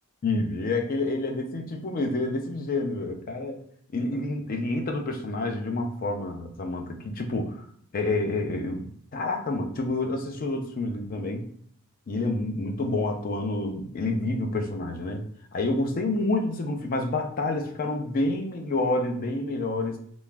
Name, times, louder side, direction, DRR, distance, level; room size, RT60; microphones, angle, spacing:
voice 1, 0.2-3.6 3.9-7.6 7.9-11.4 12.1-15.2 15.5-20.0, left 2 dB, 40° left, 4 dB, 0.4 m, -28 dB
2.3 x 2.0 x 3.2 m, 0.65 s
head